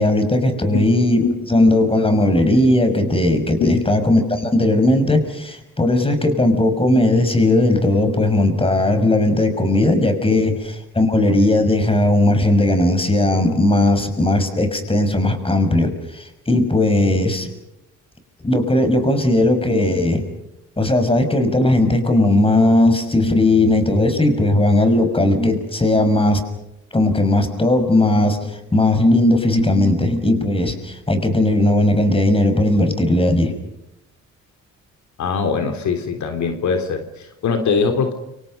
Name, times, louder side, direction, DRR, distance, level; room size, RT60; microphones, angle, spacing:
voice 1, 0.0-1.2 1.5-10.6 10.9-17.5 18.4-20.3 20.8-26.4 26.9-33.5, left 1 dB, 20° left, 8 dB, 6.1 m, -17 dB
voice 2, 35.2-38.1, left 5 dB, 70° left, 6 dB, 3.5 m, -21 dB
29.5 x 26.5 x 5.5 m, 0.83 s
cardioid pair, 90°, 30 cm